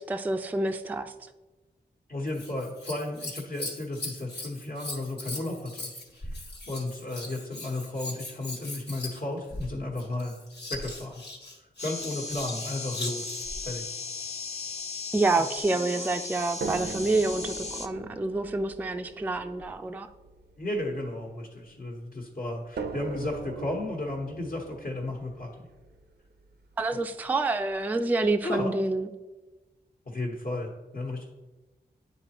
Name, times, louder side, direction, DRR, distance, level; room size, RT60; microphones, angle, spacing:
voice 1, 0.1-1.1 15.1-20.1 26.8-29.1, right 2 dB, 10° right, 7 dB, 0.3 m, -28 dB
voice 2, 2.1-5.9 6.2-10.4 10.7-11.2 11.6-13.9 15.4-15.5 20.6-25.7 28.4-28.8 30.0-31.2, left 2 dB, 60° left, -2 dB, 1.2 m, -34 dB
Scissors, 2.3-13.6 15.6-16.2 16.9-17.0, left 2 dB, 85° left, 1.5 m, -40 dB
sound 1, 11.8-17.9, left 4 dB, 40° left, 0.6 m, -37 dB
sound 2, 16.6-21.8 22.8-26.7 27.7-27.8 28.2-28.3, right 4 dB, 85° right, 0.5 m, -41 dB
9.9 x 4.1 x 3.0 m, 1.1 s
wide cardioid pair, 65°, 17 cm